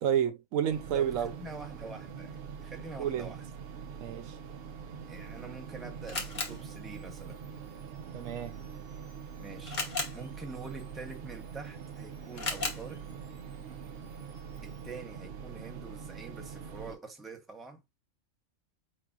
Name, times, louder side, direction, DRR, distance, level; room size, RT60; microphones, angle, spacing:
voice 1, 0.0-1.3 3.0-3.3 4.0-4.4 8.1-8.6, right 9 dB, 90° right, 1.1 m, -30 dB
sound 1, 0.7-17.0, right 6 dB, 55° right, 0.7 m, -44 dB
voice 2, 0.9-3.4 5.1-7.4 9.4-9.8 10.1-13.0 14.6-17.8, right 4 dB, ahead, 0.7 m, -45 dB
Camera, 5.1-15.0, left 3 dB, 40° left, 1.1 m, -42 dB
4.6 x 4.1 x 2.4 m
omnidirectional pair, 1.3 m